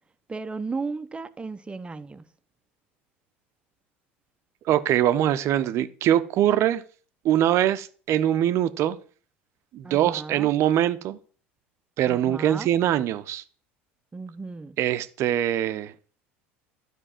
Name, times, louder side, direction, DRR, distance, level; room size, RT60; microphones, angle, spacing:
voice 1, 0.3-2.2 9.8-10.5 12.0-12.7 14.1-14.8, right 4 dB, 15° right, 1.0 m, -35 dB
voice 2, 4.7-6.8 7.2-9.0 9.7-11.2 12.0-13.4 14.8-15.9, right 11 dB, 45° right, 0.9 m, -23 dB
12.0 x 5.5 x 7.7 m
figure-of-eight pair, 70°, 6 cm